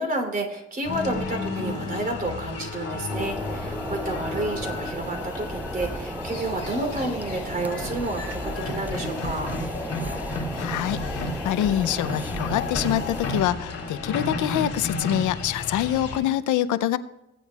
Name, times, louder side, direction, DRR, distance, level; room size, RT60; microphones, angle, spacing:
voice 1, 0.0-9.5, right 2 dB, 30° right, 3 dB, 3.2 m, -30 dB
sound 1, 0.8-16.2, left 3 dB, 55° left, 3.2 m, -32 dB
sound 2, 3.1-13.4, right 1 dB, 5° right, 0.4 m, -35 dB
voice 2, 10.5-17.0, left 12 dB, 80° left, 15 dB, 0.6 m, -25 dB
17.0 x 9.9 x 2.3 m, 0.94 s
cardioid pair, 90°, 30 cm